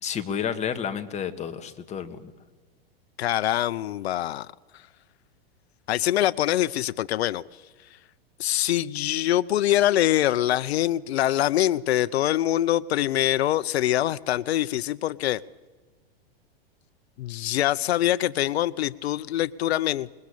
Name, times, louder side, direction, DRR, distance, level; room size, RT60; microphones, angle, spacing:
voice 1, 0.0-2.3, left 8 dB, 20° left, 1.7 m, -31 dB
voice 2, 3.2-4.5 5.9-7.4 8.4-15.4 17.2-20.1, left 13 dB, 85° left, 0.7 m, -24 dB
26.0 x 22.0 x 8.5 m
supercardioid pair, 140°, 31 cm